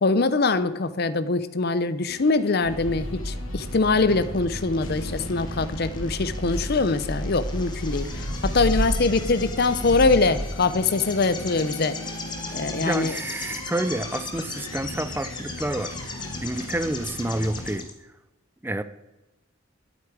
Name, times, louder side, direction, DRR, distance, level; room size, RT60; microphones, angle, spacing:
voice 1, 0.0-12.0 12.5-13.2, left 3 dB, 50° left, 13 dB, 0.6 m, -23 dB
sound 1, 2.1-17.8, left 1 dB, 80° left, 1.3 m, -39 dB
sound 2, 2.6-10.5, equal, 40° right, 1.7 m, -32 dB
sound 3, 3.6-17.9, left 4 dB, 20° left, 1.3 m, -39 dB
voice 2, 12.7-17.9 18.6-18.8, right 1 dB, 10° right, 12 dB, 0.5 m, -29 dB
12.0 x 8.4 x 4.8 m, 1.0 s
head